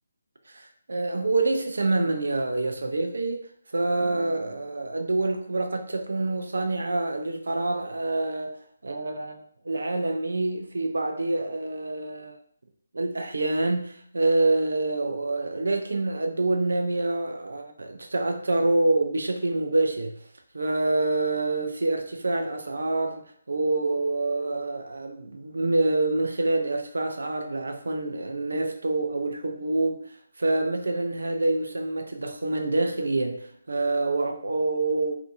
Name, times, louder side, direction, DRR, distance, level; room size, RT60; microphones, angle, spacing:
voice 1, 0.5-3.5 3.7-8.6 8.8-9.4 9.6-12.4 12.9-20.2 20.5-30.0 30.4-35.1, right 2 dB, 70° right, 0.4 m, -26 dB
2.7 x 2.5 x 2.5 m
figure-of-eight pair, 155°, 0 cm